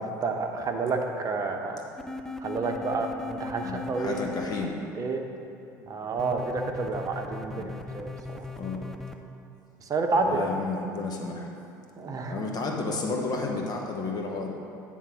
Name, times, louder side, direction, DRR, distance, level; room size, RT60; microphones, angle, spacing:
voice 1, 0.0-1.8 2.4-4.2 5.0-5.2 5.9-8.4 9.9-10.5 12.0-12.4, right 3 dB, 35° right, 4 dB, 0.8 m, -29 dB
sound 1, 2.0-4.6 6.2-9.1, left 4 dB, 5° left, 0.5 m, -38 dB
voice 2, 3.6-4.8 5.8-5.9 7.5-7.8 8.5-8.9 10.2-11.5 12.0-14.5, left 3 dB, 40° left, 1 dB, 1.1 m, -32 dB
9.0 x 3.7 x 6.1 m, 2.7 s
hypercardioid pair, 70°, 10 cm